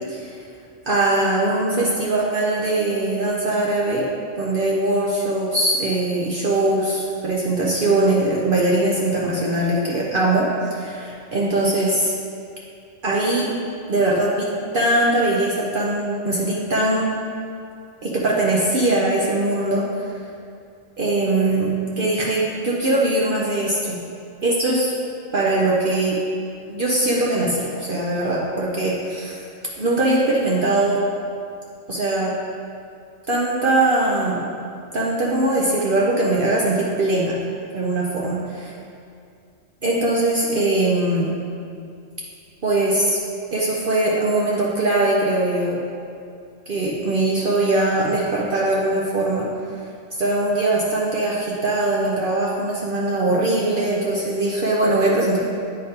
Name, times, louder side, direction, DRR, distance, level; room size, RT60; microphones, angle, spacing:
voice 1, 0.9-4.1 4.4-12.1 13.0-13.5 13.9-14.5 14.7-17.1 18.0-20.1 21.0-24.0 24.4-24.9 25.3-26.2 26.7-29.4 29.8-31.0 31.9-32.3 33.3-34.5 34.9-37.4 37.7-38.7 39.8-41.3 42.6-43.2 43.5-45.8 46.7-49.5 50.2-55.4, right 2 dB, 55° right, -4 dB, 0.8 m, -21 dB
8.5 x 5.0 x 2.8 m, 2.4 s
omnidirectional pair, 1.2 m